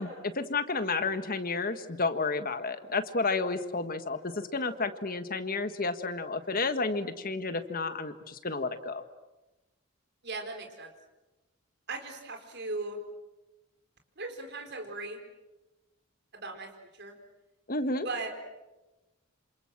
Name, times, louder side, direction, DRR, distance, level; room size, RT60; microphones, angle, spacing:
voice 1, 0.0-9.0 17.7-18.1, left 3 dB, 40° left, 9 dB, 1.6 m, -31 dB
voice 2, 10.2-10.9 11.9-13.0 14.2-15.2 16.3-17.2 18.0-18.3, right 3 dB, 50° right, 4 dB, 4.5 m, -38 dB
27.5 x 27.5 x 7.5 m, 1.0 s
head